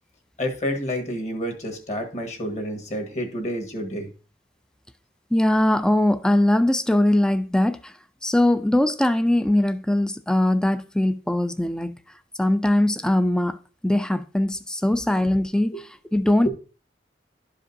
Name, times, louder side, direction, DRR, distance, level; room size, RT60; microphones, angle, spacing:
voice 1, 0.4-4.1 15.7-15.8, equal, 40° left, 1.5 m, -29 dB
voice 2, 5.3-7.8 8.2-12.0 12.4-13.6 13.8-15.7 16.1-16.5, left 1 dB, 5° left, 0.3 m, -21 dB
11.5 x 5.0 x 2.6 m
head